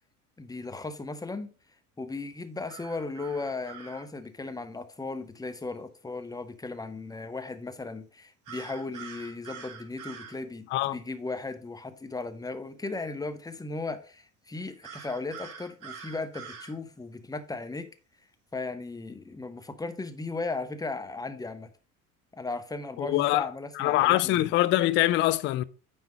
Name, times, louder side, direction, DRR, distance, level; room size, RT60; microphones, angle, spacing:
voice 1, 0.4-1.5 2.0-17.9 18.5-21.7 22.3-24.5, left 3 dB, 10° left, 0.8 m, -36 dB
sound 1, 2.7-4.0 8.5-10.4 14.8-16.7, right 7 dB, 45° right, 2.5 m, -44 dB
voice 2, 23.0-23.5 23.7-25.6, left 16 dB, 30° left, 0.3 m, -24 dB
9.2 x 3.5 x 5.0 m
figure-of-eight pair, 70°, 45 cm